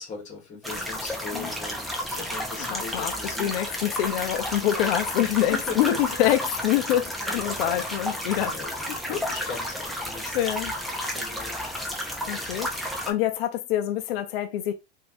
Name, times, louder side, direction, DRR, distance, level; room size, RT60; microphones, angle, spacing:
voice 1, 0.0-3.5 5.2-6.0 7.2-7.4 7.7-8.2 8.5-10.4 11.1-11.6, left 4 dB, 20° left, 1.5 m, -39 dB
sound 1, 0.6-13.1, equal, ahead, 0.5 m, -32 dB
voice 2, 2.7-3.1 3.4-8.6 9.1-9.2 10.3-10.7 12.3-14.7, left 12 dB, 65° left, 0.6 m, -26 dB
3.1 x 2.7 x 2.6 m
hypercardioid pair, 120°, 33 cm